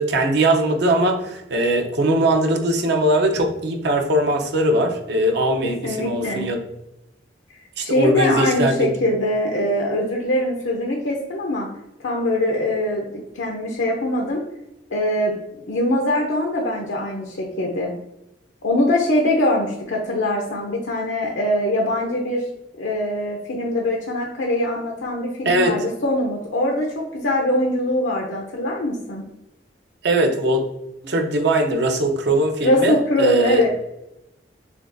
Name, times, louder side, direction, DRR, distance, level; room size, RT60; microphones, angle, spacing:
voice 1, 0.0-6.6 7.8-8.9 25.4-25.7 30.0-30.6 31.0-33.6, right 1 dB, 65° right, 3 dB, 0.6 m, -20 dB
voice 2, 5.6-6.5 7.8-11.7 12.0-13.0 13.3-14.4 14.9-15.4 15.7-17.9 18.6-22.4 22.8-29.2 32.6-33.7, left 1 dB, 85° left, -1 dB, 0.6 m, -22 dB
6.8 x 2.3 x 2.6 m, 0.89 s
head